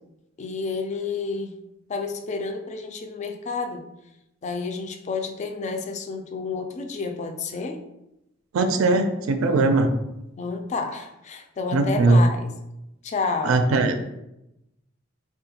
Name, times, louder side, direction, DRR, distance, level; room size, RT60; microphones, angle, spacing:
voice 1, 0.4-1.6 1.9-3.8 4.4-7.8 10.4-12.5 13.0-13.6, left 4 dB, 35° left, 6 dB, 0.3 m, -30 dB
voice 2, 8.5-9.9 11.7-12.2 13.5-13.9, right 3 dB, 85° right, 6 dB, 0.4 m, -19 dB
3.6 x 2.3 x 2.8 m, 0.89 s
head